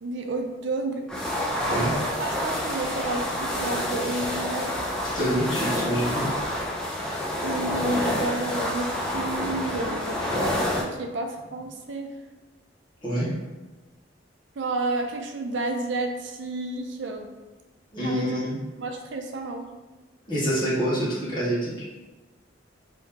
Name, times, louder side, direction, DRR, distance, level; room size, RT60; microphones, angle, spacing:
voice 1, 0.0-1.1 2.2-4.7 7.4-12.1 14.6-17.3 18.0-18.4 18.8-19.7, right 2 dB, 75° right, 4 dB, 0.5 m, -31 dB
sound 1, 1.1-10.8, left 1 dB, 5° left, 0.5 m, -28 dB
voice 2, 5.1-6.3 13.0-13.3 17.9-18.6 20.3-21.7, equal, 25° left, -8 dB, 1.2 m, -26 dB
3.0 x 2.7 x 3.5 m, 1.1 s
head